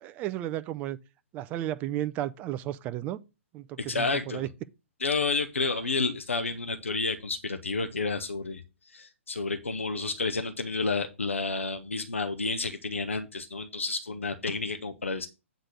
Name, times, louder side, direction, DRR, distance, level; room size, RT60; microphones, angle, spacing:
voice 1, 0.0-1.0 1.3-3.2 3.5-4.5, right 13 dB, 20° right, 0.4 m, -33 dB
voice 2, 3.8-4.5 5.0-8.6 8.9-15.3, left 3 dB, 70° left, 1.1 m, -30 dB
8.8 x 4.0 x 6.3 m
figure-of-eight pair, 125°, 7 cm